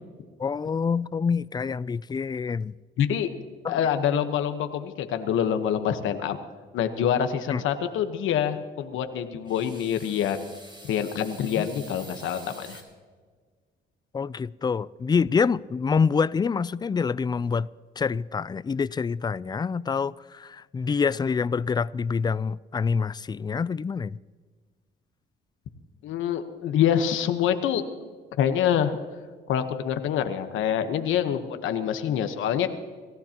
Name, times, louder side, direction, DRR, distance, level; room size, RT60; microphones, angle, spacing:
voice 1, 0.4-2.7 3.6-3.8 7.5-7.6 11.6-11.7 14.1-17.7 18.0-24.2, left 5 dB, 20° left, 0.3 m, -26 dB
voice 2, 3.0-3.3 3.7-6.4 6.7-10.5 10.9-12.8 26.0-27.8 28.4-29.0 29.5-32.7, left 9 dB, 85° left, 1.2 m, -26 dB
sound 1, 9.5-12.8, right 1 dB, 25° right, 5.3 m, -47 dB
26.5 x 15.0 x 2.9 m
cardioid pair, 90°, 20 cm